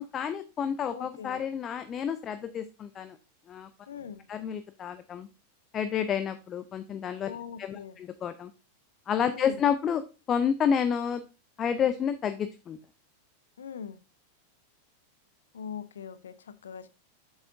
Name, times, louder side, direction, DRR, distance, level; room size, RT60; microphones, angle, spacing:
voice 1, 0.0-3.2 3.5-3.7 4.3-5.3 5.7-8.5 9.1-10.0 10.3-11.2 11.6-12.8, left 8 dB, 25° left, 0.5 m, -30 dB
voice 2, 0.9-1.5 3.9-4.2 7.3-8.0 9.3-9.6 13.6-14.0 15.5-16.9, left 7 dB, 65° left, 0.6 m, -41 dB
7.8 x 7.1 x 2.5 m
figure-of-eight pair, 90°, 0 cm